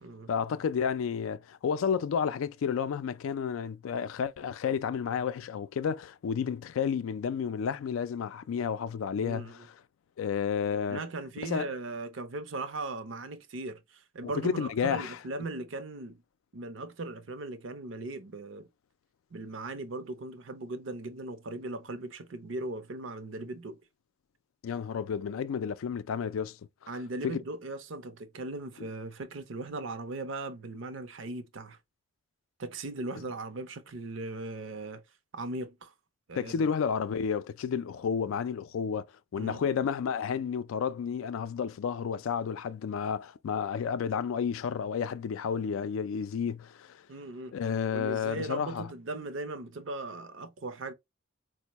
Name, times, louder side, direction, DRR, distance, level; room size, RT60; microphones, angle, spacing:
voice 1, 0.3-9.7 10.2-11.0 11.4-11.7 14.2-15.2 24.6-26.6 26.8-26.9 27.2-27.4 36.4-39.1 39.3-47.0 47.5-48.9, left 7 dB, 85° left, 0.3 m, -31 dB
voice 2, 9.2-9.7 10.9-16.2 16.5-18.7 19.3-23.8 26.9-31.8 32.6-35.0 35.3-35.9 36.3-36.7 39.3-39.6 47.1-47.5 47.9-50.9, right 2 dB, 65° right, 0.6 m, -38 dB
4.4 x 2.1 x 2.9 m
head